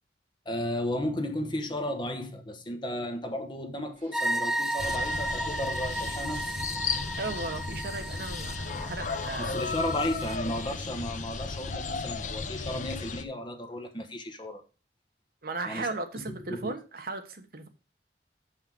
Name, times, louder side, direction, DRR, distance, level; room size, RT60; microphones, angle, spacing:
voice 1, 0.4-6.5 9.4-14.6 15.6-15.9 16.5-16.7, left 1 dB, 25° left, 1.1 m, -34 dB
sound 1, 3.9-8.8, right 3 dB, 40° right, 2.8 m, -53 dB
sound 2, 4.1-10.4, right 1 dB, ahead, 0.3 m, -34 dB
sound 3, 4.8-13.2, left 4 dB, 45° left, 0.7 m, -35 dB
voice 2, 7.2-9.8 15.4-17.7, right 3 dB, 55° right, 1.2 m, -36 dB
6.6 x 5.7 x 6.0 m
head